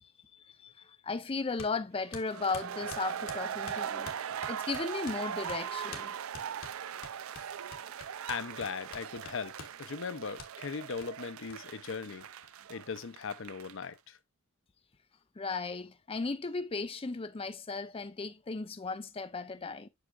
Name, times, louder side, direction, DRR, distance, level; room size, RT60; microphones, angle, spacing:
voice 1, 0.0-4.1 4.5-6.1 15.4-19.9, left 4 dB, 25° left, 0.5 m, -36 dB
sound 1, 1.6-1.8 2.1-5.2 5.5-5.6 5.9-6.1 6.3-9.8 10.4-10.5 11.0-11.1 11.5-11.6 11.9-12.0 12.2-12.9, left 5 dB, 85° left, 1.5 m, -48 dB
sound 2, 2.2-13.9, right 8 dB, 90° right, 0.5 m, -40 dB
voice 2, 8.3-12.3 12.7-14.2, left 5 dB, 65° left, 0.6 m, -39 dB
7.8 x 6.3 x 2.3 m
head